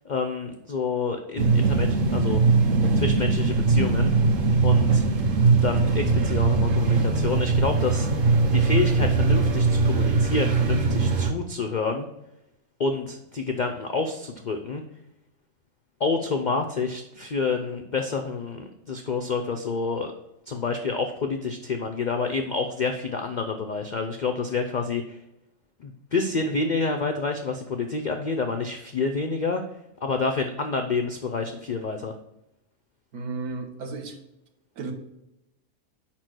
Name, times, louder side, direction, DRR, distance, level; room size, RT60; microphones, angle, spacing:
voice 1, 0.0-2.4 3.0-4.1 4.6-5.0 5.6-12.1 12.8-14.8 16.0-20.1 20.5-25.2 25.8-29.6 30.0-32.1, left 4 dB, 90° left, 5 dB, 0.4 m, -28 dB
sound 1, 1.4-11.3, right 4 dB, 50° right, 0.7 m, -21 dB
voice 2, 33.1-34.2 34.8-34.9, right 4 dB, 85° right, 5 dB, 1.5 m, -33 dB
5.0 x 4.4 x 6.1 m, 0.88 s
omnidirectional pair, 1.6 m